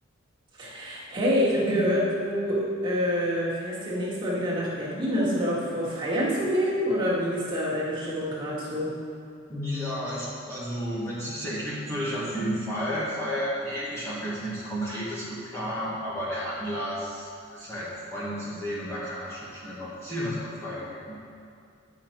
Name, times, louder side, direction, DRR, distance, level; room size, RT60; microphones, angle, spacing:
voice 1, 0.6-8.9, equal, 25° right, -8 dB, 1.9 m, -27 dB
voice 2, 9.5-21.2, equal, 15° left, -9 dB, 1.4 m, -32 dB
9.8 x 6.0 x 4.5 m, 2.4 s
head